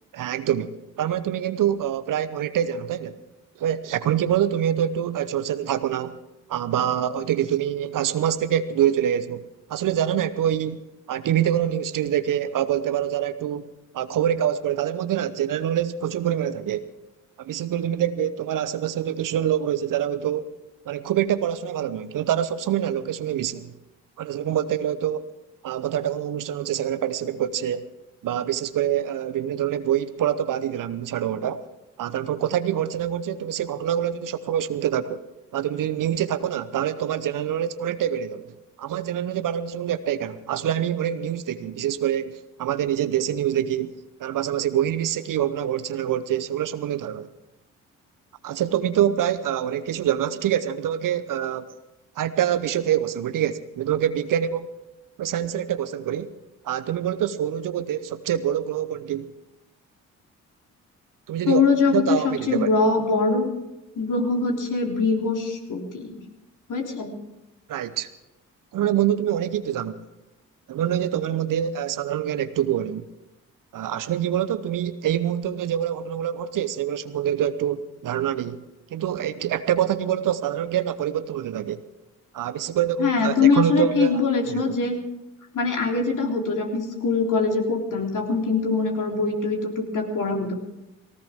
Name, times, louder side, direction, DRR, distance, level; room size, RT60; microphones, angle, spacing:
voice 1, 0.1-3.2 3.6-6.2 6.5-13.7 13.9-16.9 17.4-20.5 20.9-23.7 24.2-25.2 25.6-27.9 28.2-31.6 32.0-35.2 35.5-38.5 38.8-43.9 44.2-47.3 48.4-51.7 52.2-54.7 55.2-56.3 56.6-59.3 61.3-61.6 61.9-62.7 67.7-68.1 68.7-70.0 70.7-73.0 73.7-78.6 78.9-81.8 82.3-84.2 84.5-84.7, right 10 dB, 60° right, 13 dB, 1.0 m, -25 dB
voice 2, 61.5-63.5 64.0-66.2 66.7-67.2 83.0-85.0 85.5-90.5, left 4 dB, 55° left, 1 dB, 3.5 m, -23 dB
18.5 x 18.5 x 3.7 m, 0.96 s
hypercardioid pair, 45°, 37 cm